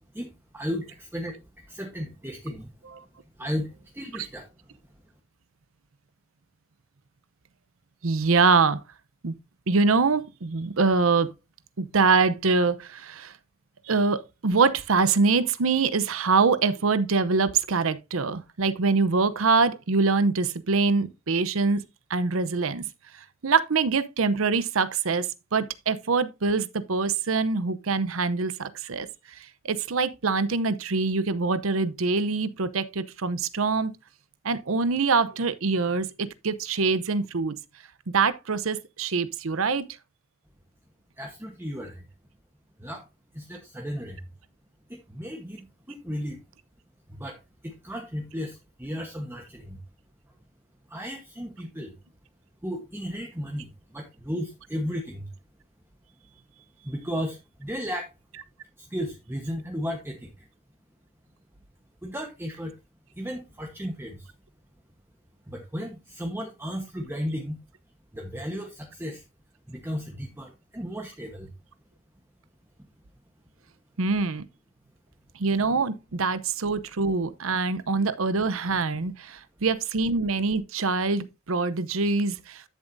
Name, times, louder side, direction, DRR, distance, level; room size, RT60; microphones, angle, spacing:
voice 1, 0.1-1.4 1.7-2.7 3.4-3.7 3.9-4.5 41.2-42.0 42.8-43.0 43.3-44.2 44.9-46.4 47.1-49.8 50.9-51.9 52.6-55.3 56.8-58.1 58.8-60.5 62.0-62.7 63.2-64.3 65.5-67.6 68.1-69.2 69.7-71.5, equal, 10° right, 1.1 m, -34 dB
voice 2, 8.0-8.8 9.2-9.3 9.7-11.3 11.8-13.3 13.9-21.8 22.1-22.8 23.4-29.4 29.6-33.9 34.4-37.5 38.1-39.9 74.0-74.4 75.4-82.6, right 4 dB, 70° right, 0.7 m, -24 dB
12.0 x 7.2 x 2.6 m
head